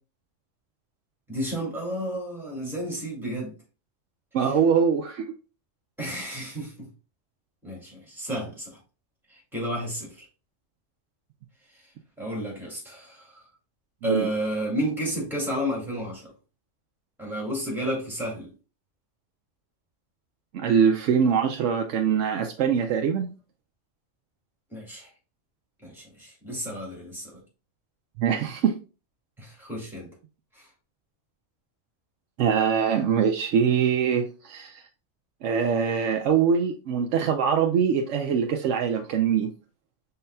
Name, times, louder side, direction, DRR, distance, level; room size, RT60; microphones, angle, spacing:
voice 1, 1.3-3.5 4.4-4.5 6.0-6.9 7.6-8.8 9.3-10.3 12.2-13.4 14.0-16.3 17.2-18.5 24.7-25.1 25.8-27.4 29.4-30.1 30.5-30.7, equal, ahead, 2.0 m, -32 dB
voice 2, 4.3-5.3 14.0-14.3 20.5-23.3 28.2-28.8 32.4-34.8 35.4-39.5, right 7 dB, 85° right, 0.9 m, -23 dB
5.6 x 3.9 x 2.2 m
omnidirectional pair, 1.2 m